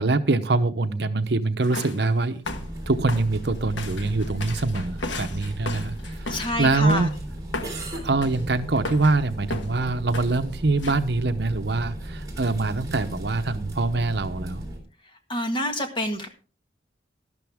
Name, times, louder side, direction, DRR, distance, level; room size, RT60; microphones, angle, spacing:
voice 1, 0.0-2.4 2.9-7.1 7.9-14.6, right 3 dB, 60° right, 10 dB, 0.8 m, -24 dB
sound 1, 1.6-2.1 2.5-2.7 3.1-7.2 7.5-7.8 8.2-8.5 8.8-9.2 9.5-9.8 10.1-10.4 10.8-10.9, left 2 dB, 80° left, 1.3 m, -35 dB
sound 2, 2.4-14.8, right 1 dB, 20° right, 3.4 m, -36 dB
voice 2, 6.0-7.1 15.3-16.3, left 1 dB, 25° left, 5 dB, 1.6 m, -28 dB
12.5 x 12.0 x 3.5 m, 0.38 s
head